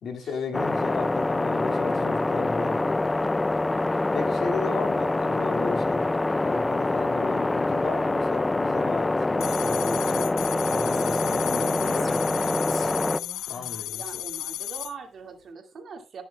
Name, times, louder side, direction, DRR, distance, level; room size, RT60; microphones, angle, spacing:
voice 1, 0.0-3.0 4.1-10.3 10.7-12.4 13.5-14.2, left 5 dB, 60° left, 2 dB, 2.3 m, -35 dB
sound 1, 0.5-13.2, left 2 dB, 20° left, 0.3 m, -25 dB
sound 2, 9.4-14.9, left 13 dB, 90° left, 0.4 m, -34 dB
Female speech woman speaking, 10.0-14.2, left 4 dB, 45° left, 1.2 m, -43 dB
voice 2, 14.0-16.2, right 5 dB, 55° right, 3 dB, 2.1 m, -42 dB
18.5 x 6.2 x 2.3 m, 0.31 s
cardioid pair, 90°, 0 cm